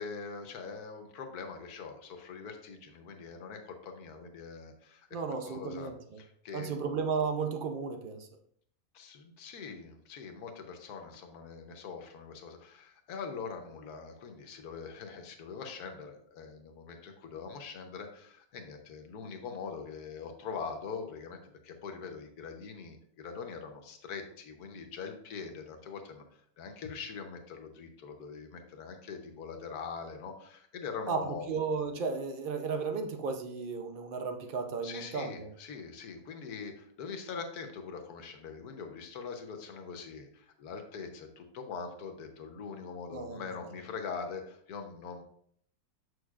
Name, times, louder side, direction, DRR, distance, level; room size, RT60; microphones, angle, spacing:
voice 1, 0.0-5.9 6.2-6.7 8.9-21.4 21.6-31.5 34.8-45.2, left 5 dB, 80° left, 5 dB, 1.3 m, -43 dB
voice 2, 5.1-6.2 6.5-8.3 31.1-35.5 43.1-43.4, right 5 dB, 55° right, 5 dB, 0.6 m, -34 dB
7.0 x 6.4 x 2.4 m, 0.65 s
omnidirectional pair, 1.6 m